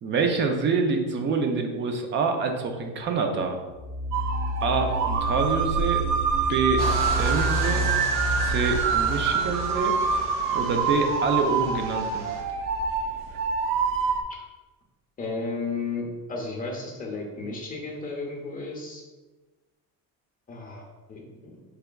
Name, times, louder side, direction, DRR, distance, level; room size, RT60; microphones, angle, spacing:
voice 1, 0.0-3.6 4.6-6.0 6.5-6.8 7.2-7.8 8.4-10.0 10.5-12.3, right 4 dB, 35° right, 4 dB, 0.5 m, -26 dB
sound 1, 3.7-10.3, right 1 dB, 15° right, 1.0 m, -30 dB
sound 2, 4.1-14.2, right 5 dB, 75° right, 0.6 m, -26 dB
sound 3, 6.8-12.4, right 2 dB, 50° right, 0.9 m, -35 dB
voice 2, 15.2-19.0 20.5-21.6, left 3 dB, 25° left, -1 dB, 0.7 m, -34 dB
4.7 x 3.4 x 2.3 m, 1.2 s
cardioid pair, 135°, 34 cm